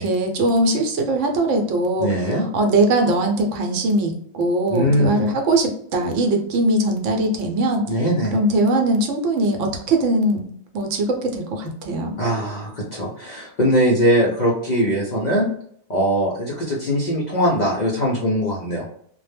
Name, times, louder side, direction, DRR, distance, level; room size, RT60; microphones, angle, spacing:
voice 1, 0.0-2.1 2.5-7.9 8.3-10.5 10.7-12.1, right 2 dB, 80° right, 4 dB, 0.9 m, -21 dB
voice 2, 2.0-2.4 4.7-5.3 7.9-8.4 12.2-15.5 15.9-18.8, equal, 55° left, -3 dB, 0.5 m, -21 dB
2.1 x 2.0 x 3.2 m, 0.63 s
omnidirectional pair, 1.3 m